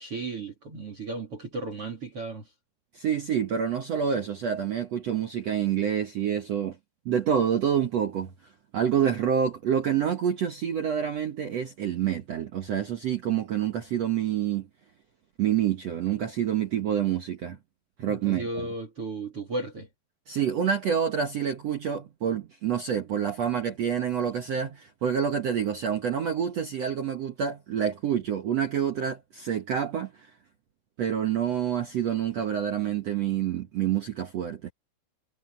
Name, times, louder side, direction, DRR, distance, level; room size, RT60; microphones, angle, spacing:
voice 1, 0.0-2.5 18.0-19.9, right 2 dB, 35° right, 3.3 m, -35 dB
voice 2, 2.9-6.8 7.0-8.3 8.7-14.7 15.4-17.6 18.0-18.7 20.3-30.3 31.0-34.7, right 8 dB, 70° right, 1.5 m, -27 dB
omnidirectional pair, 4.9 m